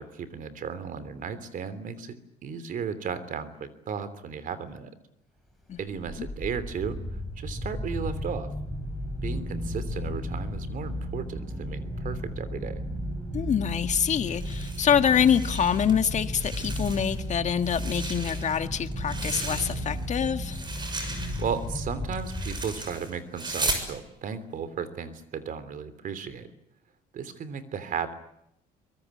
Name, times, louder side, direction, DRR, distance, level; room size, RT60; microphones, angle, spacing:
voice 1, 0.0-2.2 2.4-4.9 5.8-7.0 7.4-8.5 9.2-12.8 21.4-26.5 27.1-28.1, right 6 dB, 55° right, 13 dB, 3.2 m, -35 dB
sound 1, 5.7-23.1, equal, ahead, 6.1 m, -34 dB
voice 2, 13.3-20.6, left 8 dB, 45° left, 9 dB, 1.7 m, -25 dB
sound 2, 14.2-15.9 16.2-17.2 17.6-20.0 20.4-23.9, right 2 dB, 25° right, 6.6 m, -36 dB
24.0 x 22.0 x 9.7 m, 0.77 s
cardioid pair, 110°, 17 cm